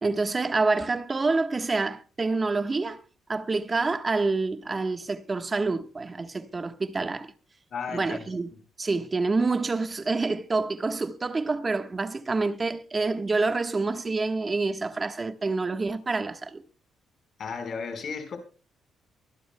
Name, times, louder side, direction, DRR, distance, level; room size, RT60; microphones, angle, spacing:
voice 1, 0.0-3.0 3.3-7.3 7.9-8.5 8.8-16.6, right 3 dB, 30° right, 1.3 m, -27 dB
voice 2, 7.7-8.3 17.4-18.4, left 5 dB, 55° left, 4.4 m, -34 dB
23.5 x 12.0 x 2.2 m
cardioid pair, 90°, 0 cm